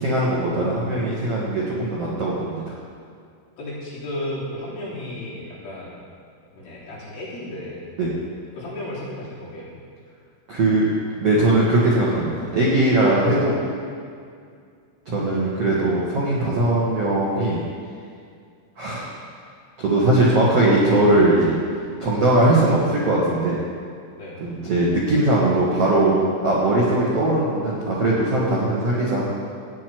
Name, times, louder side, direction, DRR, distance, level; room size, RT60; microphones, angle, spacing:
voice 1, 0.0-2.6 8.0-8.1 10.5-10.9 11.2-13.5 15.0-17.6 18.8-19.1 19.8-21.6 22.0-23.6 24.4-26.1 26.4-29.3, right 2 dB, 60° right, -7 dB, 1.6 m, -20 dB
voice 2, 3.6-6.0 6.5-7.9 8.5-9.7 15.1-15.6 24.2-24.4, left 1 dB, 50° left, -9 dB, 4.8 m, -34 dB
15.5 x 9.7 x 4.6 m, 2.2 s
omnidirectional pair, 5.7 m